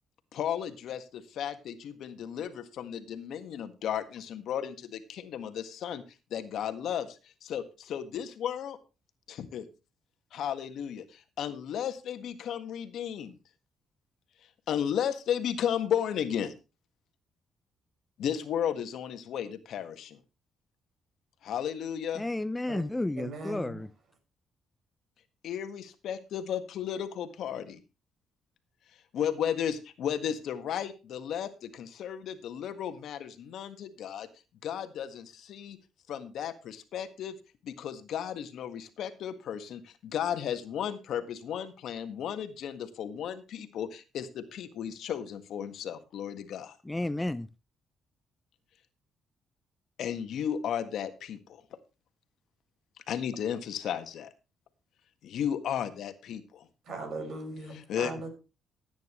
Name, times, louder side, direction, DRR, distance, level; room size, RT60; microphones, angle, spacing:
voice 1, 0.3-6.0 6.3-8.8 9.3-9.7 10.3-13.4 14.7-16.5 18.2-20.2 21.4-22.2 25.4-27.8 29.1-34.3 34.6-35.8 36.1-37.4 37.6-46.8 50.0-51.6 53.1-54.3 55.2-56.7 57.7-58.1, left 9 dB, 75° left, 1.6 m, -34 dB
voice 2, 22.2-23.9 46.9-47.5, left 2 dB, 15° left, 0.6 m, -32 dB
voice 3, 23.2-23.8 56.9-58.3, right 3 dB, 65° right, 5.4 m, -39 dB
16.5 x 9.3 x 3.1 m
cardioid pair, 90°, 0 cm